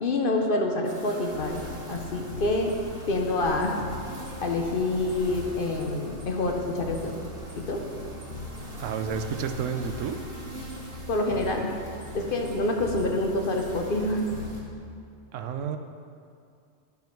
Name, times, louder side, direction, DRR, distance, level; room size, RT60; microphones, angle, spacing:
voice 1, 0.0-1.6 1.9-2.7 3.1-3.8 4.4-7.1 7.6-7.8 11.1-11.7 12.1-14.3, left 2 dB, 50° left, 2 dB, 0.9 m, -27 dB
sound 1, 0.8-14.6, right 1 dB, 50° right, 1.6 m, -44 dB
sound 2, 1.3-14.8, left 2 dB, 75° left, 1.2 m, -41 dB
voice 2, 8.8-10.2 15.3-15.8, right 7 dB, 80° right, 8 dB, 0.9 m, -30 dB
10.5 x 5.6 x 4.5 m, 2.4 s
omnidirectional pair, 1.3 m